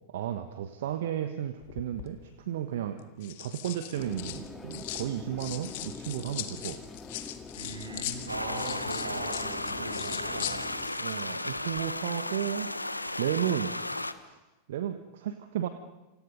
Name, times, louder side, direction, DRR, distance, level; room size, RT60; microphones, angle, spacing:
voice 1, 0.1-2.2 2.4-6.8 11.0-12.7 13.2-13.7 14.2-14.4 14.7-15.7, right 10 dB, 55° right, 9 dB, 1.3 m, -33 dB
sound 1, 1.6-2.1 3.0-5.1 5.4-11.2 11.5-11.8, left 14 dB, 50° left, 1.9 m, -40 dB
sound 2, 4.0-10.9, left 4 dB, 15° left, 2.2 m, -45 dB
voice 2, 7.6-10.7, right 2 dB, 75° right, 5 dB, 5.4 m, -38 dB
sound 3, 8.3-14.1, left 2 dB, 85° left, 1.1 m, -34 dB
28.5 x 27.5 x 5.4 m, 1.1 s
figure-of-eight pair, 90°, 0 cm